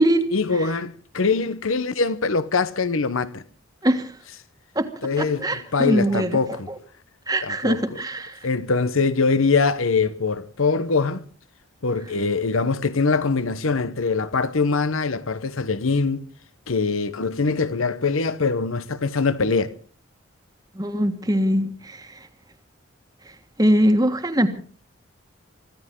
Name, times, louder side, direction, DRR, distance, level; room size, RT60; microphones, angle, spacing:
voice 1, 0.3-3.4 5.0-6.7 7.4-7.8 8.4-11.2 11.8-16.2 16.7-19.7, left 4 dB, 80° left, 1.0 m, -23 dB
voice 2, 5.2-6.4 7.3-8.4 20.7-22.0 23.6-24.5, right 1 dB, 20° right, 1.5 m, -21 dB
24.5 x 15.0 x 3.8 m
head